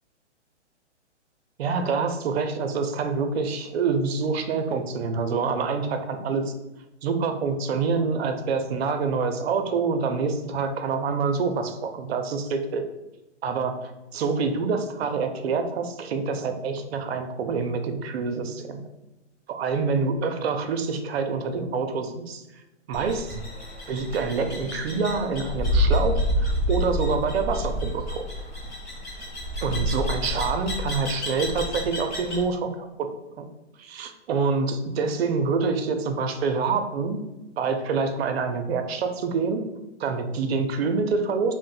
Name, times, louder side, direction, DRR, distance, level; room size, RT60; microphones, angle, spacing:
voice 1, 1.6-6.5 7.0-12.8 13.4-13.7 14.1-18.8 19.5-22.4 22.9-23.4 23.9-28.2 29.6-32.9 33.4-33.5 33.8-37.2 37.6-39.6 40.0-41.5, right 4 dB, 60° right, 6 dB, 0.5 m, -26 dB
sound 1, 22.9-32.4, left 1 dB, 20° left, 0.8 m, -28 dB
2.6 x 2.1 x 3.9 m, 1.0 s
hypercardioid pair, 140°, 36 cm